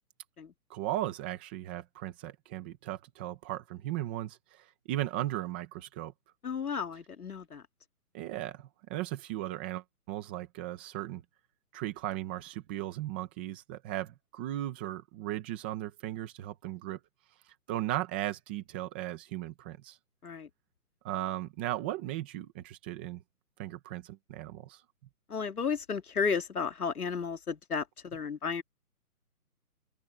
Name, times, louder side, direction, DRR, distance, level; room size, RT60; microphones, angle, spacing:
voice 1, 0.7-6.1 8.1-11.2 11.7-17.0 17.7-20.0 21.0-23.2 23.6-24.8, right 14 dB, 5° right, 0.9 m, -37 dB
voice 2, 6.4-7.6 20.2-20.5 25.3-28.6, left 5 dB, 70° left, 2.5 m, -33 dB
open air
hypercardioid pair, 165°, 46 cm